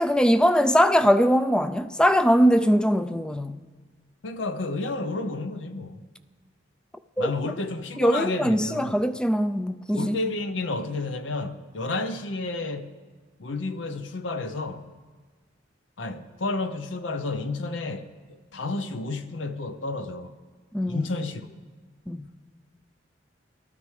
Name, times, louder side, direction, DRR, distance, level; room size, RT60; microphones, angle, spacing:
voice 1, 0.0-3.6 7.2-7.3 8.0-10.2 20.7-21.1 22.1-22.2, equal, 5° left, 0.3 m, -21 dB
voice 2, 4.2-6.0 7.2-9.0 9.9-12.9 13.4-14.9 16.0-20.3 20.9-21.5, left 2 dB, 80° left, 0.7 m, -31 dB
18.0 x 13.0 x 3.2 m
head